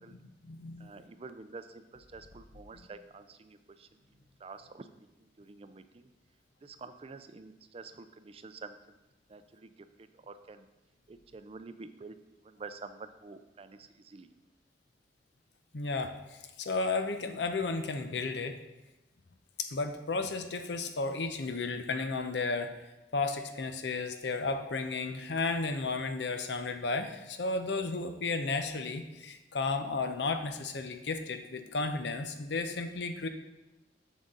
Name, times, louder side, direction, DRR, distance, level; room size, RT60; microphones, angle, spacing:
voice 1, 0.1-0.9 2.7-2.9 15.7-18.6 19.6-22.7 23.1-33.3, left 3 dB, 80° left, 7 dB, 0.7 m, -33 dB
voice 2, 0.8-4.0 4.4-4.9 5.2-6.1 6.6-9.0 9.3-10.6 11.1-12.2 12.4-14.3, right 4 dB, 35° right, 10 dB, 0.4 m, -48 dB
7.1 x 6.4 x 3.8 m, 1.0 s
head